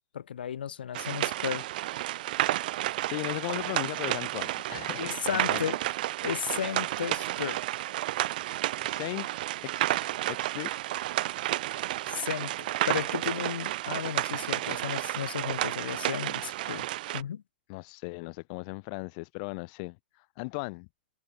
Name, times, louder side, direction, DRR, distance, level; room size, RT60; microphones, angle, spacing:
voice 1, 0.1-1.7 5.0-5.8 6.2-7.6 12.1-16.9 17.1-17.4, left 9 dB, 75° left, 7.1 m, -34 dB
sound 1, 0.9-17.2, right 15 dB, 60° right, 1.2 m, -31 dB
voice 2, 3.0-5.6 8.8-9.3 9.6-10.7 17.7-20.9, left 32 dB, 50° left, 2.9 m, -37 dB
hypercardioid pair, 115°, 5 cm